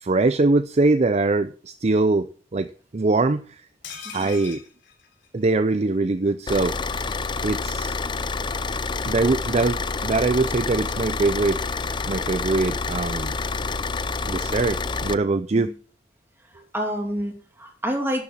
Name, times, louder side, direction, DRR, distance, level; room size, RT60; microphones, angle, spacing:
voice 1, 0.0-2.3 2.5-2.7 2.9-3.5 4.1-4.6 5.3-6.8 7.4-8.0 9.1-11.6 12.1-13.4 14.3-15.7, right 3 dB, 35° right, 11 dB, 0.5 m, -22 dB
sound 1, 3.8-5.8 6.1-6.2 6.5-6.6, left 6 dB, 65° left, 3.7 m, -41 dB
voice 2, 4.0-4.4 15.5-15.7 16.7-18.2, equal, 10° right, 3 dB, 2.6 m, -28 dB
Car / Idling, 6.5-15.1, left 4 dB, 25° left, 0.5 m, -28 dB
11.5 x 7.0 x 6.1 m, 0.42 s
head